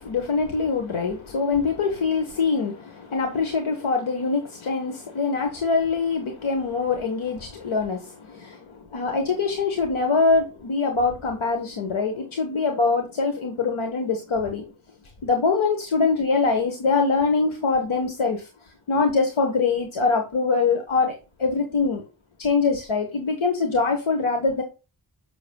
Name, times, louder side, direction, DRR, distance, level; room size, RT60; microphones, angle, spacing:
voice 1, 0.0-14.7 15.2-18.5 18.9-22.0 22.4-24.6, left 4 dB, 85° left, 4 dB, 1.2 m, -24 dB
6.9 x 6.8 x 2.2 m, 0.31 s
cardioid pair, 45°, 47 cm